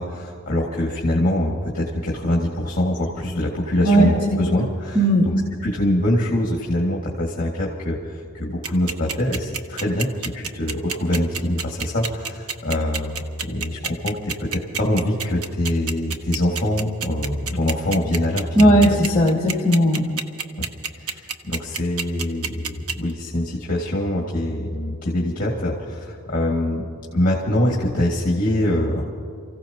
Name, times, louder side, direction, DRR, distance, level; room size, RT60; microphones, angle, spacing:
voice 1, 0.0-5.3 5.6-10.1 10.3-19.0 20.6-20.7 21.0-26.8 27.1-29.0, left 1 dB, 40° left, -3 dB, 2.1 m, -24 dB
voice 2, 4.9-5.2 18.6-20.1, right 1 dB, 15° left, -6 dB, 2.0 m, -16 dB
sound 1, 8.6-23.1, right 6 dB, 85° right, 1.0 m, -28 dB
29.5 x 16.0 x 2.9 m, 2.6 s
head